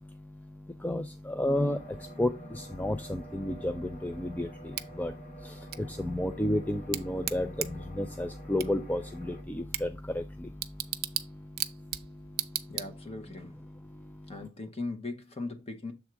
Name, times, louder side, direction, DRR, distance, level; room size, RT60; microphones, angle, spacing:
voice 1, 0.0-13.1 13.7-14.5, left 1 dB, 10° left, 0.3 m, -33 dB
sound 1, 1.5-9.4, right 1 dB, 45° left, 2.2 m, -50 dB
Bicycle / Tick, 4.7-13.3, right 13 dB, 45° right, 0.5 m, -39 dB
voice 2, 12.7-13.6 14.3-15.9, left 3 dB, 30° left, 0.9 m, -39 dB
7.1 x 3.6 x 4.6 m
head